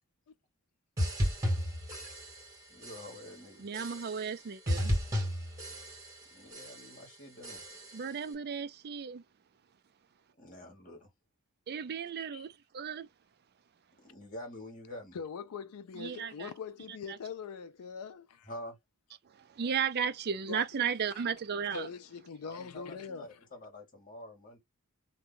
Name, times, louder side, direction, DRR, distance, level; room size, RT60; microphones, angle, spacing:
sound 1, 1.0-2.6 2.8-3.3 3.7-4.4 4.7-6.2 6.5-7.0 7.4-8.1, equal, 15° right, 1.6 m, -34 dB
voice 1, 2.7-3.7 6.3-7.6 10.4-11.1 12.3-12.5 14.0-15.2 18.5-18.8 22.4-24.6, left 1 dB, 35° left, 1.3 m, -47 dB
voice 2, 3.6-4.9 7.9-9.2 11.7-13.1 16.0-16.5 19.6-21.9, right 7 dB, 45° right, 0.4 m, -34 dB
voice 3, 15.1-18.5 20.5-20.8 21.1-21.2 21.7-23.4, left 5 dB, 75° left, 0.4 m, -42 dB
2.7 x 2.2 x 3.7 m
head